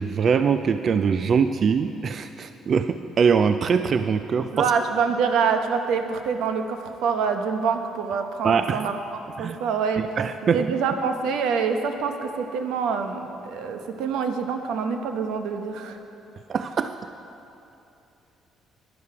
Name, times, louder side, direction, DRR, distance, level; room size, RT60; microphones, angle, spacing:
voice 1, 0.0-4.7 8.4-8.8 9.4-9.6 10.2-10.6 16.5-16.9, right 6 dB, 45° right, 10 dB, 0.3 m, -22 dB
voice 2, 4.5-10.0 10.4-16.0, right 6 dB, 90° right, 6 dB, 0.9 m, -26 dB
11.5 x 11.0 x 4.8 m, 2.8 s
cardioid pair, 130°, 0 cm